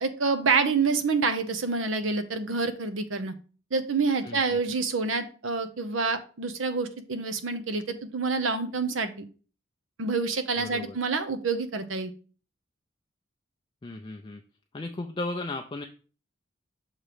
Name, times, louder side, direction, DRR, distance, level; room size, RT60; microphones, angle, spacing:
voice 1, 0.0-3.3 3.7-9.1 10.0-12.1, right 4 dB, 90° right, 10 dB, 0.7 m, -27 dB
voice 2, 4.2-4.6 10.6-11.0 13.8-14.4 14.7-15.9, left 2 dB, 25° left, 4 dB, 0.4 m, -35 dB
6.5 x 3.0 x 4.8 m, 0.38 s
head